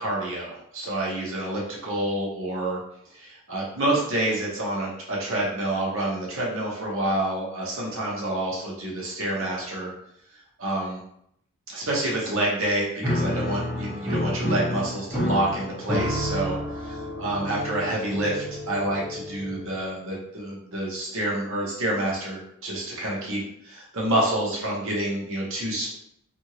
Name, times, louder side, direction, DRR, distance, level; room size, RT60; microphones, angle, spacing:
voice 1, 0.0-2.8 3.1-9.9 10.6-11.0 11.7-16.6 16.9-25.9, right 1 dB, 60° right, -3 dB, 0.8 m, -28 dB
Piano, 13.0-19.8, left 1 dB, ahead, 1.0 m, -30 dB
2.8 x 2.6 x 2.9 m, 0.73 s
head